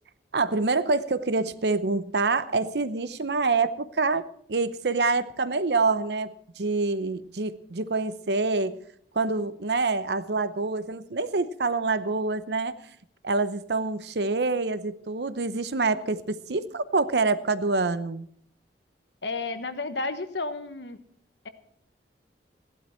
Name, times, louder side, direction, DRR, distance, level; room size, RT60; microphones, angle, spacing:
voice 1, 0.3-8.8 9.1-12.8 13.2-18.3, right 3 dB, 70° right, 13 dB, 0.8 m, -26 dB
voice 2, 19.2-21.0, left 3 dB, 80° left, 9 dB, 1.2 m, -32 dB
16.0 x 11.5 x 4.4 m, 0.65 s
head